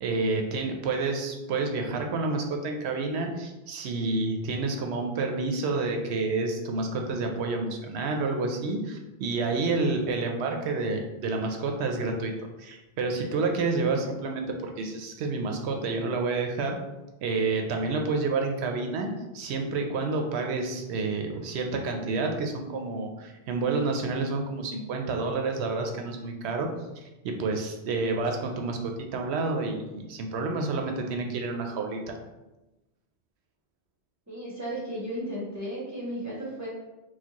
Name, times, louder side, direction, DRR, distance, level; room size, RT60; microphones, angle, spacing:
voice 1, 0.0-12.3 12.6-16.8 17.2-26.7 27.2-32.2, right 3 dB, 80° right, 3 dB, 0.8 m, -29 dB
voice 2, 34.3-36.7, right 1 dB, 15° right, -8 dB, 1.0 m, -34 dB
4.3 x 2.3 x 2.9 m, 1.0 s
omnidirectional pair, 1.1 m